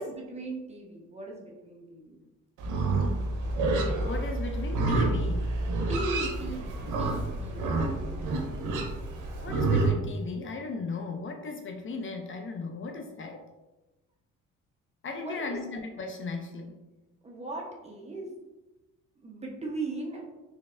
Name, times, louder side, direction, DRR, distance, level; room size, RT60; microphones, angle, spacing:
voice 1, 0.0-2.2 5.9-8.5 15.2-15.4 17.2-18.3 19.2-20.2, right 2 dB, 20° right, -1 dB, 0.9 m, -38 dB
Livestock farm animals working animals, 2.6-9.9, right 2 dB, 85° right, 0.7 m, -28 dB
voice 2, 4.0-5.6 9.4-13.4 15.0-16.8, left 3 dB, 40° left, 4 dB, 0.5 m, -36 dB
4.0 x 3.2 x 2.5 m, 1.1 s
cardioid pair, 90°, 30 cm